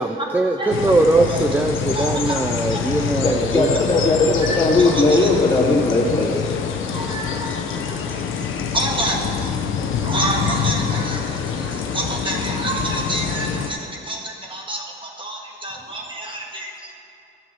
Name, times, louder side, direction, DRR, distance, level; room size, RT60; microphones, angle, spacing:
voice 1, 0.0-3.8, right 2 dB, 10° right, 5 dB, 0.5 m, -20 dB
sound 1, 0.7-13.7, left 7 dB, 80° left, 0.9 m, -25 dB
voice 2, 1.9-2.4 2.7-2.8 4.8-5.3 6.9-7.6 7.8-8.2 8.7-9.5 10.0-17.0, right 1 dB, 25° right, -1 dB, 1.5 m, -28 dB
voice 3, 3.2-6.5, left 2 dB, 20° left, -4 dB, 2.7 m, -18 dB
11.5 x 6.1 x 7.6 m, 2.8 s
cardioid pair, 90°, 20 cm